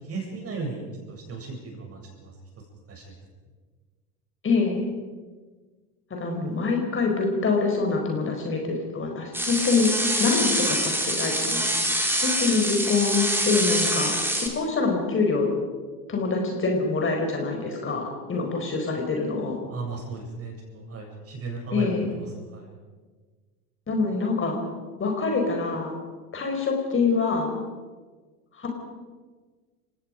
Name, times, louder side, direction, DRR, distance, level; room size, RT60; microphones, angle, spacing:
voice 1, 0.0-2.3 2.9-3.1 19.7-22.3 22.5-22.7, right 3 dB, 30° right, 1 dB, 7.6 m, -36 dB
voice 2, 4.4-4.9 6.1-9.9 10.2-12.0 12.2-15.5 16.1-19.6 21.7-22.1 23.9-24.6 25.0-25.9 26.3-27.5 28.5-28.7, left 4 dB, 25° left, 2 dB, 4.7 m, -25 dB
sound 1, 9.3-14.5, right 1 dB, 5° right, 3.8 m, -25 dB
30.0 x 17.5 x 5.2 m, 1.4 s
figure-of-eight pair, 80°, 47 cm